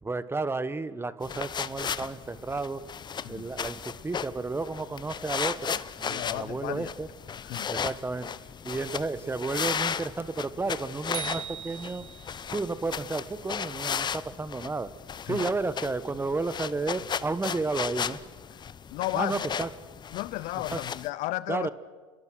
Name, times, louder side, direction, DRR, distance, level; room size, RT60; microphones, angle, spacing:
voice 1, 0.0-2.8 3.3-7.1 7.7-8.3 8.6-12.1 12.5-14.9 15.3-18.2 19.1-19.7 20.7-20.8 21.5-21.7, right 3 dB, 15° right, 1.3 m, -32 dB
sound 1, 1.2-21.1, left 7 dB, 30° left, 0.9 m, -35 dB
voice 2, 6.1-6.9 7.4-7.7 12.5-12.6 15.3-15.5 18.9-19.4 20.1-21.7, left 18 dB, 60° left, 0.7 m, -33 dB
sound 2, 11.1-12.5, right 11 dB, 75° right, 1.6 m, -39 dB
29.5 x 22.0 x 6.4 m
hypercardioid pair, 85°, 15 cm